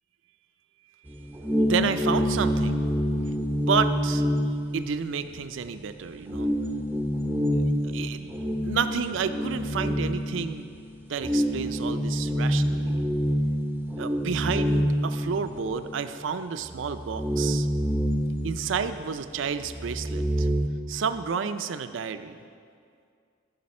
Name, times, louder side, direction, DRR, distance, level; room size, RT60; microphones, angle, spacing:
sound 1, 1.1-5.4 5.7-5.8 6.3-10.7 11.2-15.9 16.2-16.3 16.7-19.2 19.5-20.7, equal, 10° right, 0.6 m, -27 dB
voice 1, 1.7-2.9 3.7-4.2 4.7-6.5 7.8-10.7 11.1-13.0 14.0-17.7 18.4-20.5 20.9-22.4, right 6 dB, 70° right, 10 dB, 0.4 m, -30 dB
13.5 x 5.6 x 4.2 m, 2.3 s
head